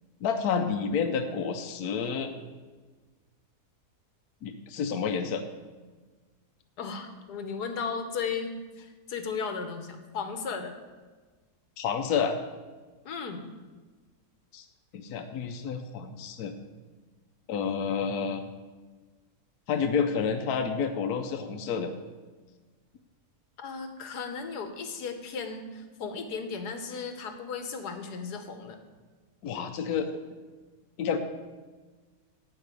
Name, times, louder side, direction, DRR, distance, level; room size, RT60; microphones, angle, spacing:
voice 1, 0.2-2.3 4.4-5.4 11.8-12.3 14.5-14.6 14.9-16.5 17.5-18.4 19.7-21.9 29.4-30.1 31.0-31.2, left 6 dB, 75° left, 5 dB, 1.2 m, -29 dB
voice 2, 6.8-10.7 13.0-13.4 23.6-28.8, left 5 dB, 90° left, 7 dB, 1.6 m, -35 dB
12.0 x 4.7 x 8.3 m, 1.4 s
omnidirectional pair, 1.7 m